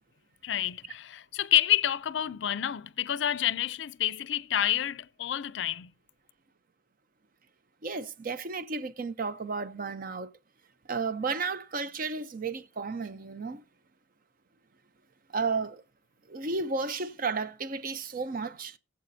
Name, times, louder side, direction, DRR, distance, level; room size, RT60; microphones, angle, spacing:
voice 1, 0.4-5.9, left 11 dB, 70° left, 0.4 m, -28 dB
voice 2, 7.8-10.3 10.9-13.6 15.3-15.8 16.3-18.8, right 4 dB, 50° right, 0.6 m, -33 dB
19.5 x 7.6 x 2.7 m
head